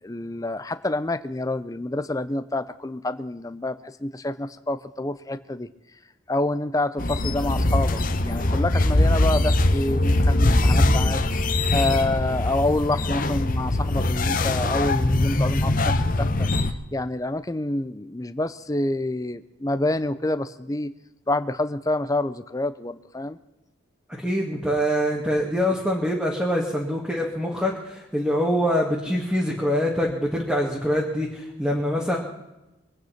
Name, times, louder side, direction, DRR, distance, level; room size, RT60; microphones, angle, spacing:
voice 1, 0.0-5.7 6.3-20.9 21.3-23.4, left 2 dB, 15° left, 12 dB, 0.5 m, -27 dB
sound 1, 7.0-16.7, left 2 dB, 45° left, 1.0 m, -22 dB
voice 2, 24.1-32.2, equal, 5° right, -3 dB, 1.9 m, -24 dB
23.5 x 9.3 x 5.8 m, 0.97 s
head